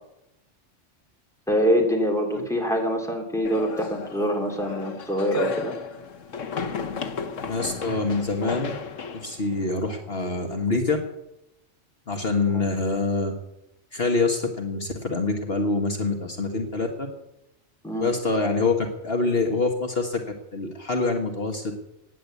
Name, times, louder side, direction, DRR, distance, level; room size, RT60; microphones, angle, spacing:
voice 1, 1.5-5.7 17.8-18.1, equal, ahead, 1 dB, 3.0 m, -24 dB
sound 1, 3.4-10.5, left 5 dB, 85° left, 1.5 m, -34 dB
voice 2, 7.4-8.7 9.1-11.0 12.1-13.3 13.9-17.1 18.0-21.7, left 3 dB, 50° left, 4 dB, 1.7 m, -25 dB
15.5 x 10.0 x 8.2 m, 0.88 s
omnidirectional pair, 1.3 m